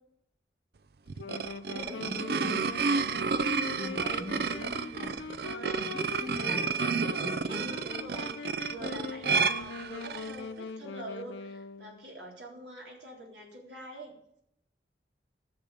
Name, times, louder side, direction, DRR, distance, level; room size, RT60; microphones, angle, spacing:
sound 1, 1.1-10.4, right 5 dB, 55° right, 0.5 m, -31 dB
Wind instrument woodwind instrument, 1.2-12.1, left 4 dB, 80° left, 0.6 m, -41 dB
voice 1, 1.7-5.2 5.7-7.7, equal, 25° right, 2 dB, 2.0 m, -42 dB
voice 2, 4.0-4.3 5.4-5.8 6.4-6.7 7.5-14.1, right 1 dB, 75° right, -1 dB, 3.8 m, -45 dB
13.5 x 6.8 x 8.8 m, 0.76 s
head